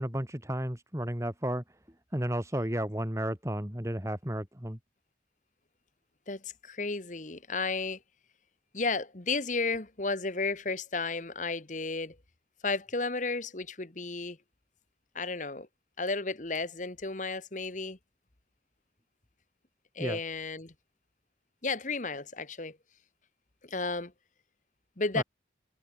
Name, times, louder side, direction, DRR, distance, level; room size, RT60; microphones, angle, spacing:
voice 1, 0.0-1.6 2.1-4.8 20.0-20.2 25.1-25.2, equal, 15° right, 2.9 m, -32 dB
voice 2, 6.3-8.0 8.7-12.2 12.6-14.4 15.1-15.7 16.0-18.0 19.9-20.7 21.6-22.8 23.6-24.1 25.0-25.2, left 3 dB, 45° left, 1.7 m, -33 dB
head